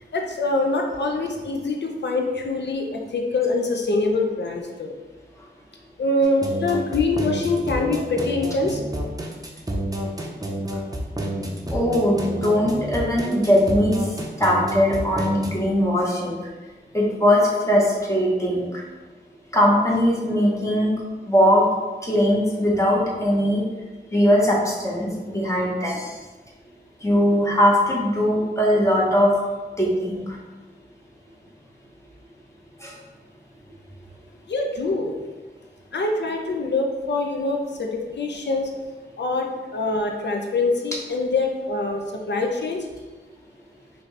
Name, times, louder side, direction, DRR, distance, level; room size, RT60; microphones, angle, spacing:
voice 1, 0.1-4.9 6.0-8.8 34.5-35.2 35.9-38.7 39.2-39.5 39.7-42.9, left 2 dB, 65° left, 2 dB, 0.5 m, -24 dB
sound 1, 6.2-15.5, right 1 dB, 20° right, 0.6 m, -29 dB
voice 2, 11.7-16.4 16.9-18.8 19.5-21.0 21.3-21.7 22.0-23.6 24.1-26.1 27.0-29.4 29.8-30.4 32.8-32.9, equal, 15° left, -4 dB, 1.0 m, -20 dB
4.0 x 2.7 x 3.2 m, 1.2 s
wide cardioid pair, 60°, 19 cm